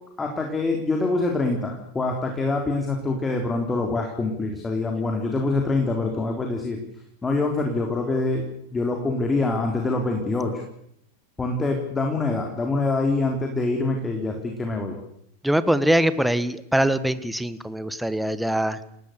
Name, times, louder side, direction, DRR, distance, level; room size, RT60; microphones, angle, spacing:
voice 1, 0.2-6.8 7.2-8.5 8.7-10.6 11.4-15.0, left 3 dB, 15° left, 2 dB, 3.7 m, -25 dB
voice 2, 15.4-18.8, right 1 dB, ahead, 14 dB, 1.5 m, -23 dB
29.0 x 19.0 x 6.8 m, 0.74 s
figure-of-eight pair, 90°, 0 cm